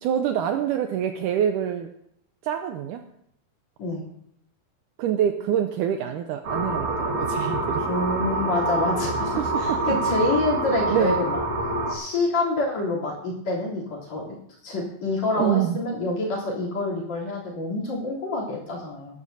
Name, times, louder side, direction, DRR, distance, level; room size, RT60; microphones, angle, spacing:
voice 1, 0.0-1.9 2.4-3.0 5.0-7.9 9.3-10.0 10.9-11.2 15.4-15.8, right 10 dB, 85° right, 6 dB, 1.8 m, -26 dB
sound 1, 6.4-11.9, right 2 dB, 55° right, 2.9 m, -26 dB
voice 2, 7.9-9.3 9.6-11.4 11.9-14.3 14.6-19.2, left 2 dB, 50° left, -5 dB, 4.4 m, -27 dB
19.0 x 12.5 x 2.8 m, 0.73 s
omnidirectional pair, 4.3 m